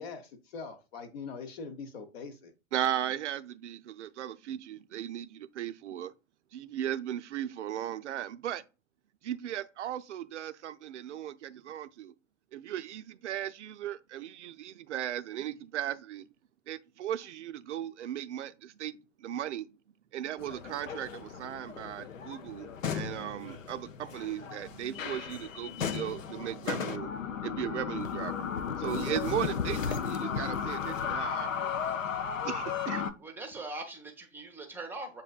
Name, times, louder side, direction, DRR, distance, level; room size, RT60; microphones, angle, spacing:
voice 1, 0.0-2.5, left 5 dB, 50° left, 0.8 m, -42 dB
voice 2, 2.7-6.1 6.5-8.6 9.2-12.1 12.5-16.3 16.7-19.7 20.1-28.5 28.8-31.8 32.4-33.1, right 11 dB, 65° right, 0.5 m, -37 dB
sound 1, 20.4-33.1, left 7 dB, 80° left, 0.5 m, -35 dB
voice 3, 33.2-35.2, right 2 dB, 5° right, 0.6 m, -41 dB
7.3 x 2.7 x 2.3 m
figure-of-eight pair, 100°, 39 cm